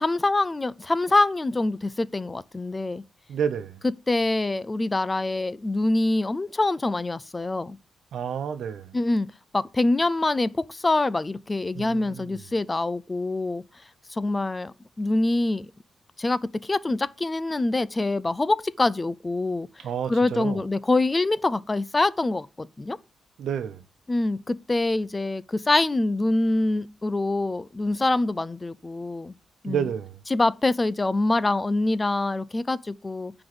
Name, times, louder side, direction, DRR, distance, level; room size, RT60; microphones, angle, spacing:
voice 1, 0.0-3.0 4.1-7.8 8.9-9.3 9.5-13.6 14.1-15.7 16.2-19.7 20.1-23.0 24.1-29.3 29.6-29.8 30.3-33.3, left 2 dB, 20° left, 0.5 m, -25 dB
voice 2, 3.3-3.8 8.1-9.0 11.7-12.4 19.8-20.6 23.4-23.8 29.6-30.2, right 8 dB, 85° right, 1.0 m, -30 dB
9.7 x 3.9 x 6.9 m
wide cardioid pair, 140°, 0 cm